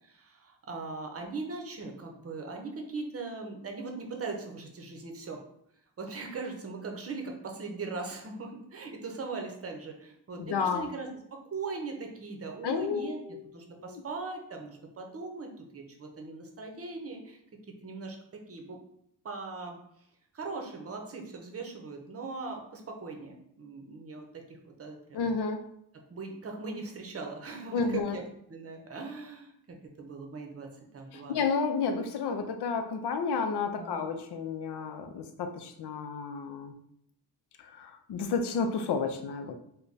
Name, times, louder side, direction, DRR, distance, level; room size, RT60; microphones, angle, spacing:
voice 1, 0.0-5.4 6.0-17.4 17.8-18.8 19.2-19.8 20.3-25.3 26.1-28.2 28.5-30.7 30.9-31.4 33.8-34.1, right 3 dB, 35° right, 3 dB, 0.7 m, -40 dB
voice 2, 10.4-10.9 12.6-13.5 13.8-14.0 25.1-25.6 27.7-28.2 31.3-36.7 37.8-39.5, left 5 dB, 75° left, 6 dB, 0.6 m, -31 dB
3.3 x 2.2 x 3.9 m, 0.73 s
wide cardioid pair, 110°, 40 cm